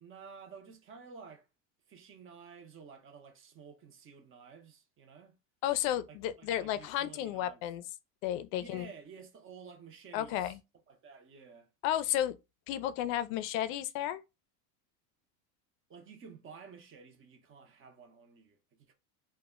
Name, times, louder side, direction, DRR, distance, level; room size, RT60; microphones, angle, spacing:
voice 1, 0.0-1.5 1.9-5.4 6.1-7.7 8.5-10.6 10.9-11.7 15.9-18.9, right 5 dB, 30° right, 0.7 m, -52 dB
voice 2, 5.6-7.8 8.2-8.9 10.1-10.6 11.8-12.4 12.7-14.2, left 12 dB, 60° left, 0.5 m, -32 dB
2.2 x 2.0 x 3.5 m
supercardioid pair, 125°, 45 cm